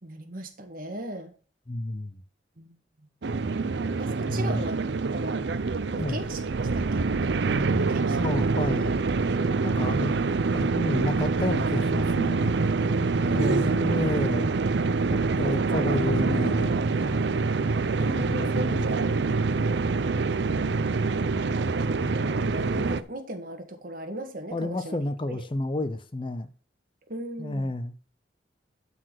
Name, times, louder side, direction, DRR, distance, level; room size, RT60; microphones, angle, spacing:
voice 1, 0.0-1.3 2.6-3.1 4.0-4.8 5.1-5.4 5.9-6.4 6.7-7.1 7.4-8.4 13.2-14.0 14.3-14.7 15.4-16.0 18.0-19.3 21.7-25.0 25.3-25.4 27.1-27.7, right 1 dB, 50° right, 1.8 m, -38 dB
voice 2, 1.7-2.2 4.3-4.7 6.0-6.2 8.2-8.9 9.6-10.2 10.5-12.5 13.3-14.5 15.1-16.7 17.0-17.2 18.0-18.9 24.5-26.5 27.4-27.9, left 1 dB, 25° left, 0.6 m, -30 dB
sound 1, 3.2-23.0, right 4 dB, 65° right, 0.6 m, -25 dB
12.0 x 4.2 x 6.4 m
head